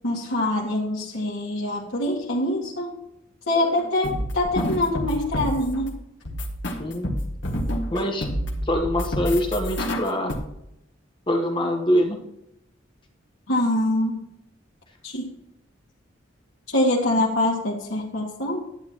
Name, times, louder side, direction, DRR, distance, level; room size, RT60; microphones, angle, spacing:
voice 1, 0.0-3.0 3.5-5.9 13.5-14.2 15.0-15.3 16.7-18.6, left 1 dB, 80° left, -5 dB, 2.1 m, -24 dB
sound 1, 3.8-5.8 6.3-8.0 8.2-10.4, equal, 65° left, 1.8 m, -28 dB
voice 2, 7.9-8.3 8.6-10.3 11.3-12.2, equal, 25° left, 3 dB, 1.2 m, -24 dB
11.5 x 9.1 x 3.0 m, 0.82 s
head